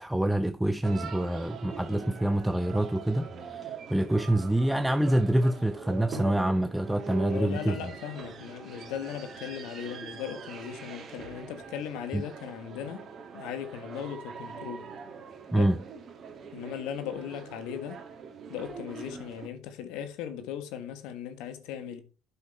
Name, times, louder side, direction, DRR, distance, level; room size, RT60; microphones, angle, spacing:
voice 1, 0.0-7.8 12.1-12.2 15.5-15.8, right 1 dB, 5° right, 0.5 m, -26 dB
sound 1, 0.8-19.5, right 6 dB, 45° right, 1.9 m, -43 dB
voice 2, 7.3-13.0 13.3-15.0 15.5-15.7 16.5-18.0 18.5-22.0, left 9 dB, 70° left, 1.5 m, -38 dB
8.5 x 6.1 x 4.4 m
hypercardioid pair, 70°, 0 cm